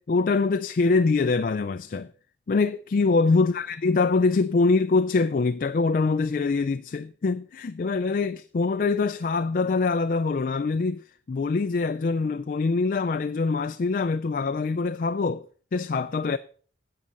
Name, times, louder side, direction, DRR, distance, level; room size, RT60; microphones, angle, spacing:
voice 1, 0.0-2.1 2.5-15.5 15.7-16.4, left 4 dB, 45° left, 0.4 m, -24 dB
10.0 x 7.5 x 5.5 m
head